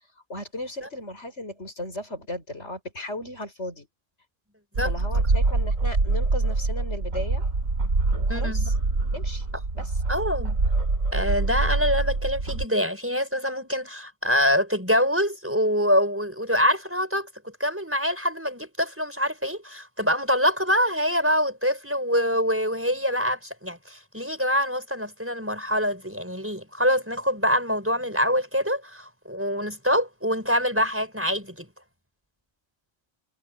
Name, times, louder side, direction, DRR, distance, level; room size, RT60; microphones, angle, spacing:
voice 1, 0.3-3.9 4.8-7.4 8.1-8.7 9.1-9.5 9.7-9.9, left 1 dB, 60° left, 6.4 m, -36 dB
sound 1, 4.8-12.7, right 3 dB, 85° right, 3.3 m, -25 dB
voice 2, 8.3-8.7 10.1-10.6 11.1-31.7, equal, 10° right, 5.7 m, -25 dB
omnidirectional pair, 1.3 m